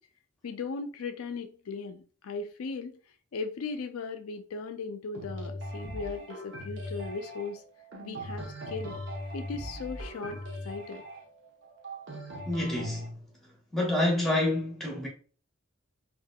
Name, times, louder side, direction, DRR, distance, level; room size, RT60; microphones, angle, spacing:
voice 1, 0.4-3.0 3.3-7.6 8.0-9.0 9.3-11.0, left 4 dB, 85° left, 0.4 m, -37 dB
sound 1, 5.1-13.1, equal, 55° right, 0.8 m, -40 dB
voice 2, 12.5-13.2 13.7-15.1, left 1 dB, ahead, 1.0 m, -28 dB
3.5 x 2.6 x 2.2 m
head